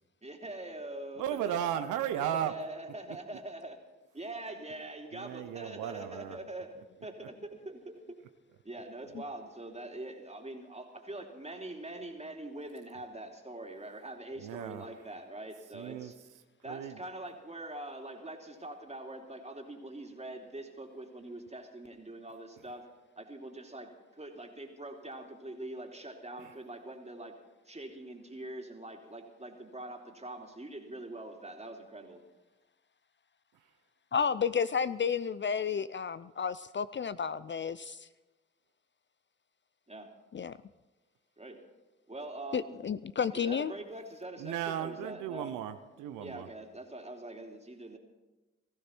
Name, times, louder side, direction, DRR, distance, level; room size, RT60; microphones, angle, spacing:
voice 1, 0.2-1.6 2.2-3.8 4.1-6.7 7.0-8.2 8.6-16.2 16.6-22.9 23.2-27.3 27.6-32.2 39.9-40.1 41.4-41.6 42.1-42.8 43.3-45.5 46.2-48.0, right 1 dB, 20° right, 2 dB, 3.1 m, -43 dB
voice 2, 1.2-2.6 5.1-6.4 7.2-7.3 14.4-14.9 15.7-16.1 16.7-17.0 26.4-26.5 44.4-46.5, right 10 dB, 85° right, 9 dB, 0.8 m, -35 dB
voice 3, 34.1-38.1 40.3-40.5 42.5-43.7, left 6 dB, 40° left, 15 dB, 0.5 m, -31 dB
18.5 x 15.0 x 4.5 m, 1.1 s
hypercardioid pair, 40°, 30 cm